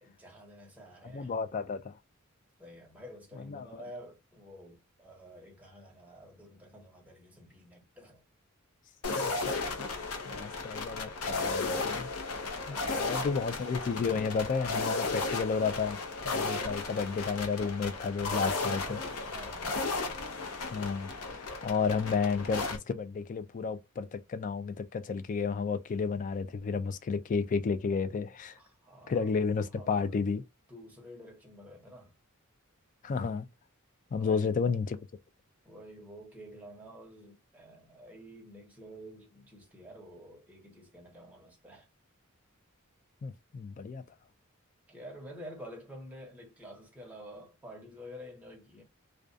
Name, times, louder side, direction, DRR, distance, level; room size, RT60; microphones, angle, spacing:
voice 1, 0.0-1.3 2.6-8.2 12.7-13.5 18.3-20.0 28.6-29.3 29.7-30.3 30.7-32.1 34.1-34.6 35.6-41.9 44.9-48.8, equal, 5° right, 0.9 m, -49 dB
voice 2, 1.1-1.9 3.5-3.8 9.2-9.5 10.3-12.1 12.7-16.0 16.2-19.0 20.7-28.6 29.1-30.4 33.0-33.5 34.1-35.0 43.2-44.0, left 5 dB, 35° left, 0.3 m, -32 dB
sound 1, 9.0-22.8, left 3 dB, 75° left, 0.7 m, -34 dB
2.3 x 2.2 x 2.5 m
head